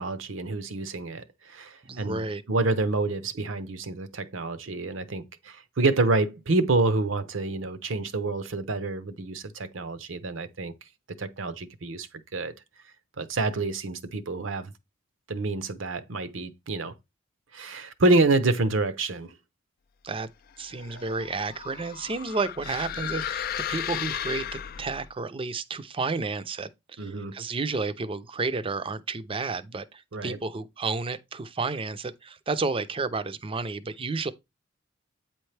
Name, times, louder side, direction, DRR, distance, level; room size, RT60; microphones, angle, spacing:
voice 1, 0.0-10.7 11.2-12.1 12.3-12.5 13.2-14.7 15.3-16.9 17.5-19.3 20.9-21.0 27.0-27.4 30.1-30.4, right 2 dB, 70° right, 0.7 m, -27 dB
voice 2, 1.9-2.4 20.0-20.3 20.6-34.3, right 3 dB, 25° right, 0.5 m, -31 dB
sound 1, 20.6-25.1, left 10 dB, 50° left, 0.3 m, -35 dB
8.6 x 4.4 x 3.3 m
head